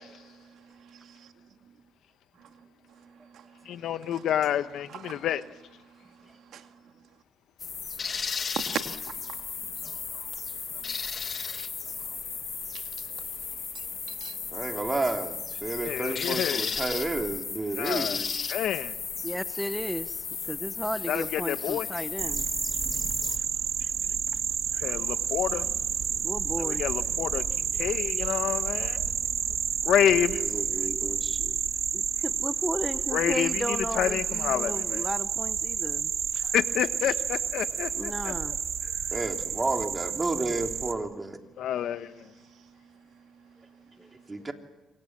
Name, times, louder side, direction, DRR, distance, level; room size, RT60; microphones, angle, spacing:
voice 1, 0.2-1.3 2.4-2.6 2.9-4.2 4.9-5.3 5.9-6.9 8.6-9.4 10.1-10.4 11.0-11.1 11.4-11.5 11.8-11.9 12.7-13.1 13.7-14.4 23.4-23.5 24.3-24.4 24.9-25.0 29.0-29.7 32.1-32.2 41.9-42.0 42.2-44.4, right 9 dB, 75° right, 2.2 m, -44 dB
voice 2, 3.7-5.4 15.8-16.7 17.8-18.2 18.5-18.9 21.1-21.9 24.8-25.7 26.6-27.4 27.8-29.0 29.8-30.5 33.1-35.0 36.3-38.6 41.6-42.1, left 10 dB, 75° left, 1.1 m, -28 dB
sound 1, 7.6-23.4, left 6 dB, 45° left, 1.6 m, -35 dB
voice 3, 14.5-18.3 23.8-23.9 30.0-31.5 39.1-41.4 44.3-44.5, right 2 dB, 20° right, 3.1 m, -32 dB
voice 4, 19.2-22.4 26.2-26.8 28.2-28.3 31.9-36.1 37.9-38.6 38.8-38.9 44.0-44.1, equal, 5° right, 0.9 m, -34 dB
sound 2, 22.2-40.9, right 7 dB, 60° right, 2.7 m, -30 dB
27.5 x 25.0 x 7.5 m
cardioid pair, 90°, 0 cm